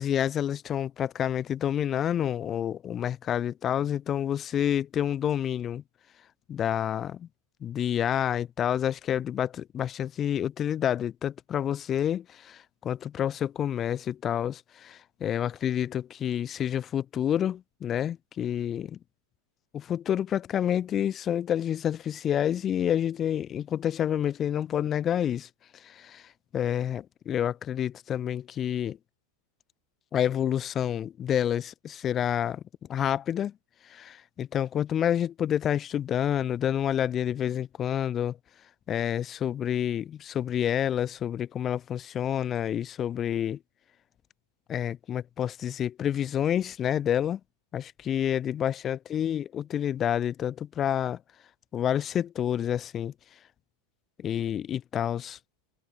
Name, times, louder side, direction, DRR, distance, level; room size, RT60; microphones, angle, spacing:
voice 1, 0.0-5.8 6.5-7.3 7.6-19.0 19.7-25.5 25.8-26.2 26.5-29.0 30.1-32.6 32.9-33.5 33.9-38.4 38.9-43.6 44.7-47.4 47.7-51.2 51.7-53.1 54.2-55.4, left 10 dB, 25° left, 0.7 m, -28 dB
figure-of-eight pair, 90°, 0 cm